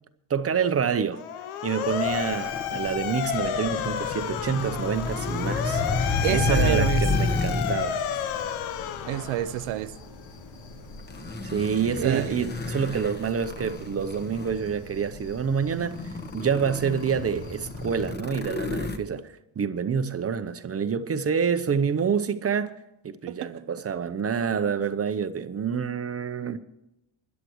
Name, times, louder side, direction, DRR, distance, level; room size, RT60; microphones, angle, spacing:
voice 1, 0.3-1.2 1.6-5.8 6.3-8.0 11.4-19.3 19.6-22.7 23.0-26.6, right 6 dB, 30° right, 0.8 m, -27 dB
Motor vehicle (road) / Siren, 1.1-9.7, left 9 dB, 85° left, 1.0 m, -31 dB
sound 1, 1.8-18.1, left 3 dB, 60° left, 2.9 m, -45 dB
sound 2, 2.4-8.0 8.8-9.0 10.9-14.7 15.3-15.4 15.7-19.0, left 3 dB, 20° left, 1.2 m, -30 dB
voice 2, 6.2-7.0 9.0-10.0 12.0-12.4 23.3-23.5, right 14 dB, 80° right, 0.7 m, -28 dB
21.0 x 11.0 x 3.1 m
cardioid pair, 115°, 47 cm